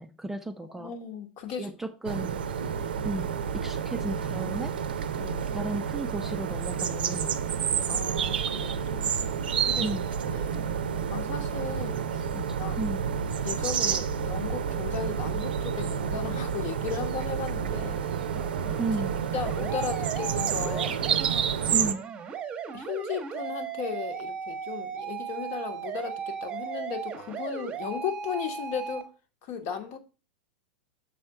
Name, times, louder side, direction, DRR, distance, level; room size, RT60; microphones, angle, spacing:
voice 1, 0.0-0.9 1.6-2.4 3.0-4.8 5.5-7.4 9.8-10.1 12.3-13.0 18.8-19.2 21.7-22.0, right 2 dB, 5° right, 0.4 m, -34 dB
voice 2, 0.7-1.7 2.6-2.9 5.2-5.5 7.9-9.1 9.6-10.0 10.3-10.6 11.1-12.3 12.6-12.8 13.4-18.0 19.3-21.0 21.3-21.5 22.7-29.0 29.4-30.0, left 7 dB, 45° left, 1.2 m, -36 dB
sound 1, 2.0-21.9, right 7 dB, 65° right, 0.5 m, -29 dB
sound 2, 17.6-29.0, right 7 dB, 25° right, 1.0 m, -37 dB
6.5 x 4.3 x 4.6 m
figure-of-eight pair, 95°, 6 cm